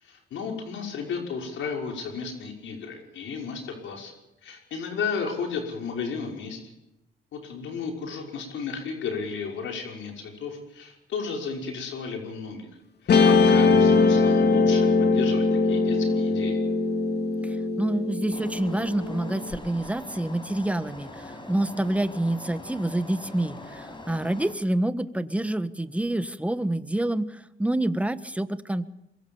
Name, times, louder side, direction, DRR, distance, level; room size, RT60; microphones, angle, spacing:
voice 1, 0.0-4.1 4.4-6.6 7.3-12.7 13.0-16.6, left 5 dB, 75° left, 2 dB, 5.7 m, -33 dB
Guitar, 13.1-19.5, left 4 dB, 55° left, 2.4 m, -21 dB
voice 2, 17.4-28.9, right 1 dB, 5° right, 11 dB, 1.4 m, -27 dB
sound 1, 18.3-24.5, left 2 dB, 25° left, 5.9 m, -42 dB
24.5 x 23.0 x 7.3 m, 0.89 s
cardioid pair, 90°, 20 cm